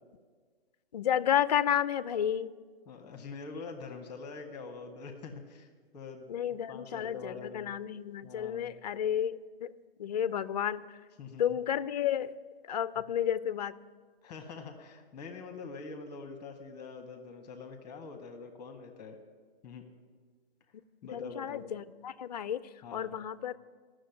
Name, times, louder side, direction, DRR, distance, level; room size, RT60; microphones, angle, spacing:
voice 1, 0.9-2.5 6.3-9.7 10.0-10.9 11.4-12.4 12.6-13.8 21.1-23.6, left 9 dB, 45° left, 16 dB, 0.4 m, -31 dB
voice 2, 2.9-5.7 5.9-6.3 6.7-7.7 8.2-8.7 11.2-11.5 14.2-19.2 19.6-19.8 21.0-21.6 22.8-23.2, left 4 dB, 15° left, 5 dB, 1.0 m, -44 dB
12.5 x 6.4 x 9.3 m, 1.5 s
figure-of-eight pair, 135°, 30 cm